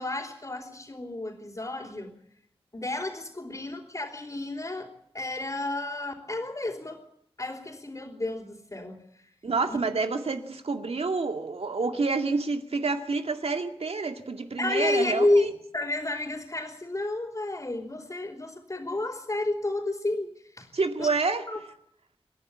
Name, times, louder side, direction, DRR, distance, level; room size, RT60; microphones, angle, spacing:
voice 1, 0.0-2.2 2.7-4.9 5.1-7.0 7.4-9.0 9.7-9.8 14.6-20.7 21.0-21.1 21.5-21.6, left 2 dB, 35° left, 4.0 m, -30 dB
voice 2, 9.4-15.5 20.7-21.4, right 4 dB, 80° right, 2.3 m, -28 dB
27.5 x 11.0 x 8.9 m
wide cardioid pair, 90°, 10 cm